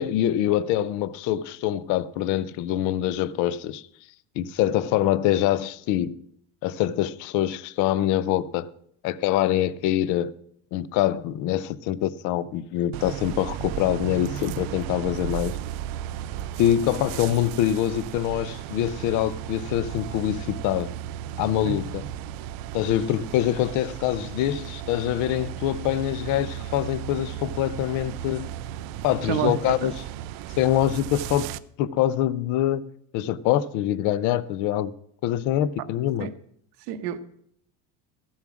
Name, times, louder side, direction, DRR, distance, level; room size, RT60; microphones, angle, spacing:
voice 1, 0.0-3.8 4.4-6.2 6.6-8.7 9.0-10.3 10.7-15.6 16.6-20.9 21.4-22.0 22.7-28.5 29.0-29.9 30.6-31.5 31.8-34.9 35.2-36.3, left 12 dB, 45° left, 0.5 m, -24 dB
sound 1, 12.9-31.6, right 11 dB, 50° right, 0.5 m, -35 dB
voice 2, 29.2-29.9 36.2-36.3 36.9-37.2, right 10 dB, 85° right, 1.2 m, -29 dB
14.5 x 7.2 x 6.2 m
cardioid pair, 170°, 46 cm